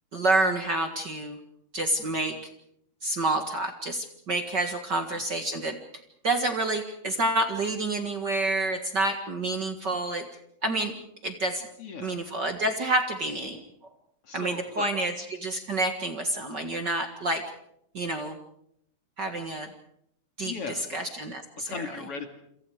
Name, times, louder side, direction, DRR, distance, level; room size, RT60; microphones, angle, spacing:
voice 1, 0.1-1.4 1.7-2.4 3.0-5.8 6.2-10.3 10.6-10.9 11.2-11.6 12.0-13.6 14.3-15.1 15.4-17.4 17.9-18.4 19.2-19.7 20.4-21.7, right 2 dB, 40° right, 6 dB, 2.1 m, -28 dB
voice 2, 11.8-12.2 14.2-14.9 20.4-21.0 21.7-22.3, left 4 dB, 50° left, 6 dB, 3.0 m, -37 dB
28.5 x 26.5 x 4.9 m, 0.73 s
omnidirectional pair, 3.5 m